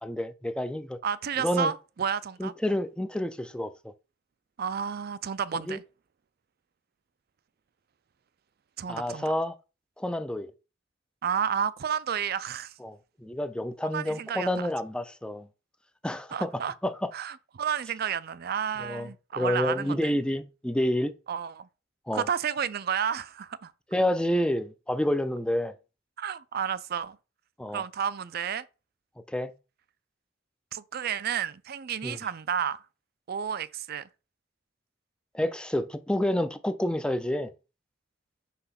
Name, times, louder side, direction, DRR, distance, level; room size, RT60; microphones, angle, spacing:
voice 1, 0.0-1.0 1.4-1.7 2.4-3.7 5.5-5.8 8.9-9.6 10.0-10.5 12.8-15.5 16.0-17.1 18.8-19.1 19.4-21.1 22.1-22.3 23.9-25.7 27.6-27.8 29.3-29.5 32.0-32.2 35.3-37.5, left 1 dB, 5° left, 0.4 m, -29 dB
voice 2, 1.0-2.5 4.6-5.8 8.8-9.3 11.2-12.7 13.9-14.7 16.3-16.7 17.1-20.1 21.3-21.7 22.1-23.7 26.2-27.2 27.7-28.6 30.7-32.8 33.3-34.1, right 7 dB, 55° right, 0.4 m, -31 dB
5.8 x 3.2 x 5.7 m
head